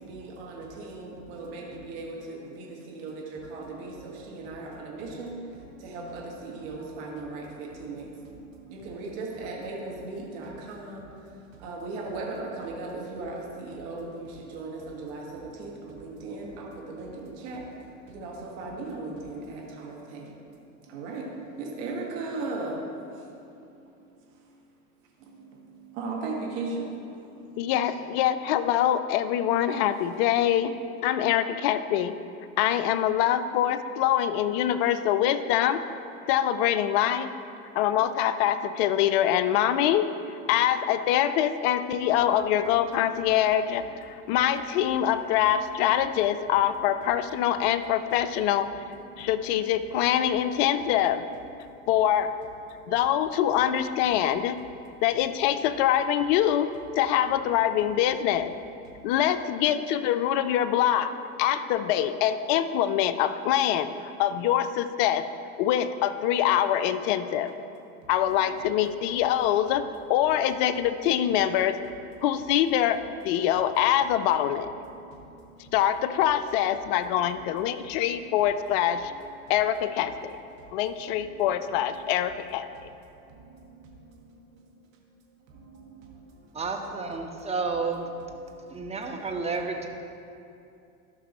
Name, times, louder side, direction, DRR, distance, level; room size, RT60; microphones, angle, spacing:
voice 1, 0.1-5.3 5.8-8.1 8.7-11.0 11.6-17.6 18.1-20.3 20.9-21.2 21.6-22.7 26.0-26.8, right 3 dB, 60° right, -2 dB, 1.7 m, -37 dB
voice 2, 27.6-30.7 31.0-32.2 32.6-35.9 36.3-37.3 37.8-40.1 40.5-48.7 49.2-51.2 51.9-52.3 52.9-54.6 55.0-58.5 59.0-63.9 64.2-65.3 65.6-67.5 68.1-69.8 70.1-71.8 72.2-74.7 75.7-79.1 79.5-80.4 80.7-82.7, left 11 dB, 45° left, 11 dB, 0.4 m, -24 dB
voice 3, 86.5-88.1 88.7-89.9, right 4 dB, 15° right, 3 dB, 0.8 m, -31 dB
13.0 x 6.0 x 3.0 m, 2.6 s
hypercardioid pair, 90°, 45 cm